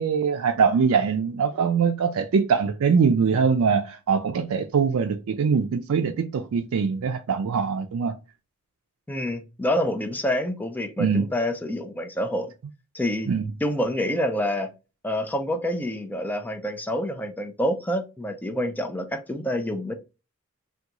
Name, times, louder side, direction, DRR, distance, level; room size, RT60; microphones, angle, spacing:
voice 1, 0.0-8.2 11.0-11.2 13.3-13.5, right 6 dB, 75° right, 0.4 m, -22 dB
voice 2, 9.1-12.5 12.9-13.3 13.6-14.7 15.0-19.9, equal, 10° left, 0.4 m, -27 dB
3.6 x 2.2 x 2.9 m
head